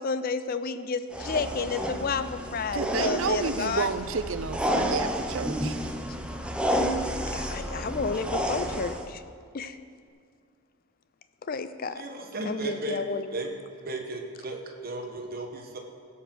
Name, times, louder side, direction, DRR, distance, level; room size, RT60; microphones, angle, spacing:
voice 1, 0.0-3.9 7.3-9.2 9.5-9.8 11.4-12.0 12.4-13.3, left 5 dB, 45° left, 12 dB, 0.5 m, -31 dB
sound 1, 1.1-9.1, equal, 5° right, 0.6 m, -30 dB
voice 2, 2.7-5.8, right 5 dB, 65° right, 12 dB, 0.5 m, -30 dB
voice 3, 12.0-13.0 13.3-13.5 13.8-15.8, right 2 dB, 45° right, 2 dB, 1.2 m, -35 dB
16.5 x 5.7 x 6.2 m, 2.2 s
head